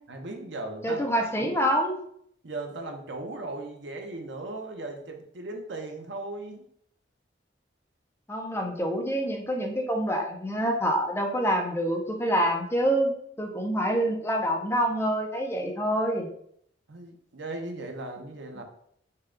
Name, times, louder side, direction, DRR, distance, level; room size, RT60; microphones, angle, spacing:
voice 1, 0.1-1.0 1.4-1.8 2.4-6.7 16.9-18.6, right 2 dB, 70° right, 3 dB, 0.8 m, -37 dB
voice 2, 0.8-2.0 8.3-16.3, equal, 15° left, 2 dB, 0.5 m, -26 dB
5.5 x 2.3 x 3.8 m, 0.67 s
head